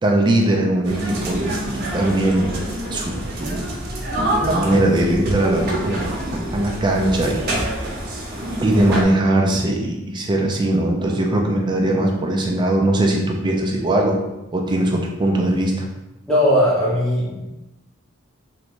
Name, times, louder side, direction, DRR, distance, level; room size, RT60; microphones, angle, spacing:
voice 1, 0.0-3.8 4.4-7.5 8.6-14.2 14.5-15.9, right 1 dB, 20° right, 1 dB, 0.3 m, -20 dB
sound 1, 0.8-9.0, right 1 dB, 50° right, 0.7 m, -26 dB
voice 2, 16.3-17.5, equal, 5° left, -7 dB, 0.8 m, -18 dB
3.2 x 2.6 x 3.0 m, 0.97 s
head